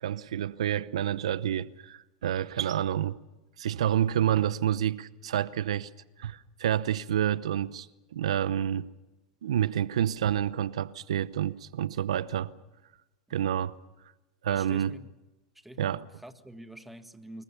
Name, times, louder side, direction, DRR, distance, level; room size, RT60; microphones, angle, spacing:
voice 1, 0.0-3.2 3.6-5.9 6.2-7.9 8.1-8.9 9.4-12.5 13.3-13.7 14.4-14.9 15.8-16.0, right 10 dB, 85° right, 0.8 m, -28 dB
voice 2, 14.5-15.1 15.6-17.4, right 1 dB, 5° right, 1.7 m, -47 dB
25.5 x 22.0 x 6.9 m
supercardioid pair, 125°, 3 cm